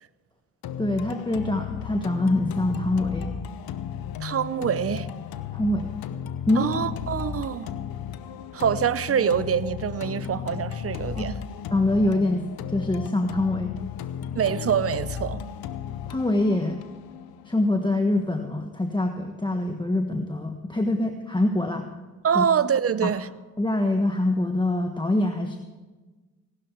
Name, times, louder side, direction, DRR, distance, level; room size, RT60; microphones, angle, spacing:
sound 1, 0.6-18.6, left 8 dB, 90° left, 0.8 m, -35 dB
voice 1, 0.8-3.3 5.5-5.9 6.5-6.7 11.1-11.3 11.7-13.7 16.1-16.8 17.5-21.9 22.3-22.5 23.0-23.1 23.6-25.6, left 1 dB, 15° left, 1.3 m, -24 dB
voice 2, 4.2-5.1 6.6-7.7 8.5-11.4 14.3-15.4 22.2-23.3, right 8 dB, 40° right, 0.8 m, -25 dB
17.5 x 12.5 x 4.6 m
cardioid pair, 65°, 35 cm